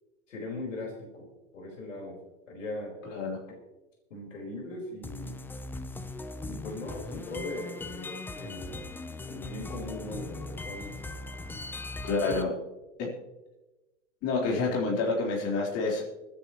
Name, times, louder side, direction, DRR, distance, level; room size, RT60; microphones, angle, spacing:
voice 1, 0.3-2.2 2.5-2.9 4.1-5.4 6.4-8.8 9.3-10.9 12.0-12.5, left 2 dB, 85° left, -1 dB, 4.9 m, -39 dB
voice 2, 3.0-3.4 12.0-12.5 13.0-13.1 14.2-16.0, left 3 dB, 40° left, -3 dB, 4.2 m, -28 dB
sound 1, 5.0-12.4, left 2 dB, 5° left, 0.5 m, -39 dB
26.0 x 9.9 x 3.1 m, 1.1 s
hypercardioid pair, 120°, 37 cm